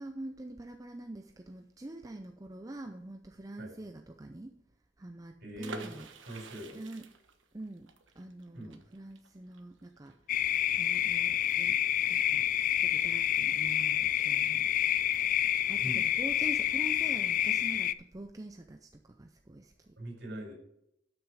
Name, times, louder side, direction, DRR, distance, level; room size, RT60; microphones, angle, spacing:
voice 1, 0.0-4.5 5.0-7.1 7.5-7.9 8.2-10.2 10.8-12.5 12.8-15.3 15.7-20.0, right 2 dB, 20° right, 5 dB, 0.5 m, -45 dB
voice 2, 5.4-6.0 6.3-6.8 8.5-8.7 15.8-16.0 20.0-20.5, right 1 dB, 65° right, 0 dB, 4.0 m, -41 dB
sound 1, 5.6-11.2 11.5-11.6 11.9-12.2, right 3 dB, 85° right, 1.2 m, -48 dB
sound 2, 10.3-17.9, left 11 dB, 45° left, 0.3 m, -28 dB
12.0 x 6.5 x 4.7 m, 0.80 s
head